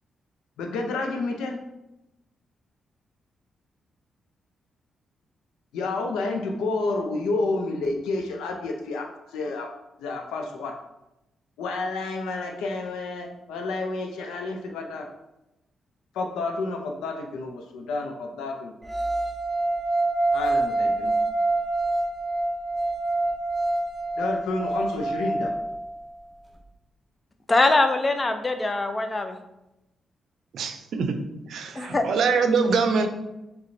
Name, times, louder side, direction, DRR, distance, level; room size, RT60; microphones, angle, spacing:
voice 1, 0.6-1.6 5.7-9.7 10.0-10.7 11.6-15.1 16.1-18.7 20.3-21.1 24.2-25.5, left 3 dB, 75° left, 3 dB, 0.6 m, -30 dB
sound 1, 18.9-26.0, right 2 dB, ahead, 1.4 m, -26 dB
voice 2, 27.5-29.4 31.8-32.0, left 2 dB, 35° left, 7 dB, 0.6 m, -22 dB
voice 3, 30.5-31.2 31.5-33.1, right 5 dB, 70° right, 7 dB, 0.5 m, -24 dB
6.4 x 2.3 x 2.7 m, 0.92 s
hypercardioid pair, 40°, 0 cm